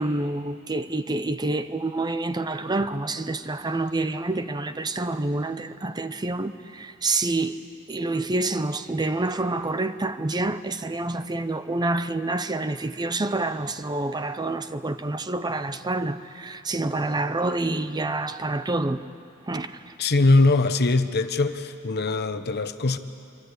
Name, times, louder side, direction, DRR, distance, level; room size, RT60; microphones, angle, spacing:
voice 1, 0.0-7.6 7.9-19.0 19.5-19.7, right 2 dB, 20° right, 0.6 m, -27 dB
voice 2, 20.0-23.0, left 2 dB, 50° left, 1.0 m, -21 dB
25.5 x 24.0 x 8.2 m
head